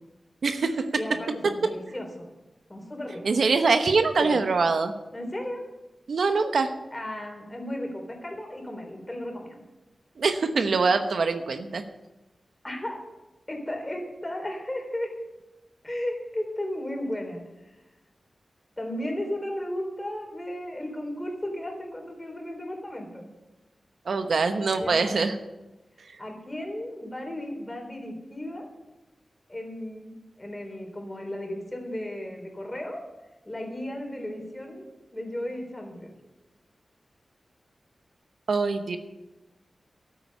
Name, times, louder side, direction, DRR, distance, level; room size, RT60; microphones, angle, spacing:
voice 1, 0.4-0.8 3.2-4.9 6.1-6.7 10.2-11.8 24.1-25.3 38.5-39.0, right 4 dB, 75° right, 8 dB, 1.0 m, -23 dB
voice 2, 1.0-2.3 2.7-3.2 4.2-4.4 5.1-5.6 6.9-9.6 12.6-13.0 13.5-15.1 15.8-17.4 18.8-23.3 24.8-25.1 26.2-28.7 29.5-30.1 30.4-33.0 33.4-34.9 35.1-36.1, left 1 dB, 20° left, 2 dB, 3.8 m, -34 dB
12.5 x 9.1 x 6.8 m, 1.0 s
wide cardioid pair, 75°, 0 cm